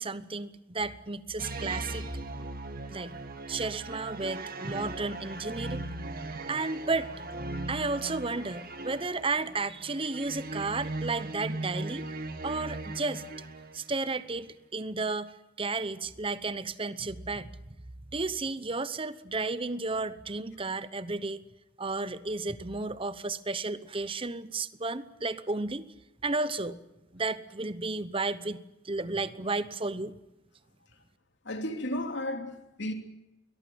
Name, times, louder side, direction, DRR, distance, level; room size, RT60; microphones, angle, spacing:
voice 1, 0.0-2.1 2.9-3.2 3.5-5.8 6.5-7.1 7.7-12.1 12.4-13.2 13.7-15.3 15.6-17.5 18.1-21.4 21.8-25.9 26.2-26.8 27.1-30.1, right 3 dB, 25° right, 0.9 m, -33 dB
sound 1, 1.4-13.9, right 2 dB, 45° right, 2.1 m, -38 dB
voice 2, 31.4-32.9, left 1 dB, 55° left, 3.1 m, -33 dB
23.0 x 18.0 x 9.4 m
head